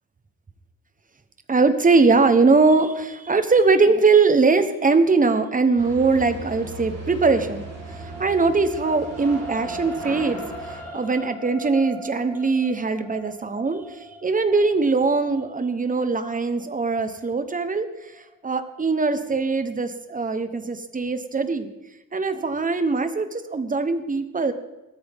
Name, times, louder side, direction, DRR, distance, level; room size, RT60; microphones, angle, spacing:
voice 1, 1.5-7.6 8.0-10.4 10.7-18.1 18.4-21.7 22.1-24.5, right 4 dB, 25° right, 9 dB, 1.0 m, -21 dB
sound 1, 5.8-10.8, right 2 dB, 50° right, 3.8 m, -37 dB
sound 2, 6.7-19.0 19.6-19.7, right 2 dB, 5° left, 3.4 m, -40 dB
21.5 x 14.0 x 3.6 m, 1.1 s
wide cardioid pair, 155°, 34 cm